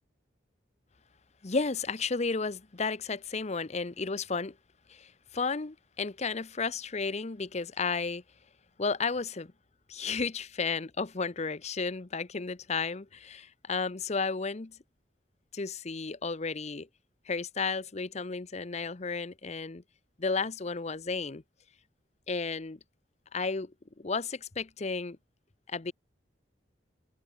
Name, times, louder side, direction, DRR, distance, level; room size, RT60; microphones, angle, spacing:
voice 1, 1.4-4.5 4.9-8.2 8.8-9.5 9.9-14.8 15.5-16.9 17.3-19.8 20.2-21.4 22.3-22.8 23.3-23.7 24.0-25.2 25.7-25.9, left 4 dB, 35° left, 0.8 m, -33 dB
head